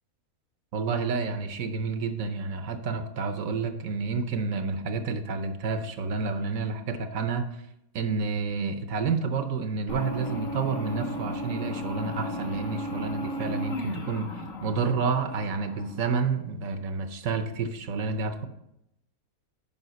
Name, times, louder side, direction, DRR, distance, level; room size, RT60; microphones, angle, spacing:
voice 1, 0.7-7.5 7.9-18.5, right 4 dB, 65° right, 8 dB, 1.1 m, -29 dB
sound 1, 9.9-16.3, left 1 dB, 65° left, 1.4 m, -35 dB
9.8 x 5.2 x 4.0 m, 0.83 s
omnidirectional pair, 1.6 m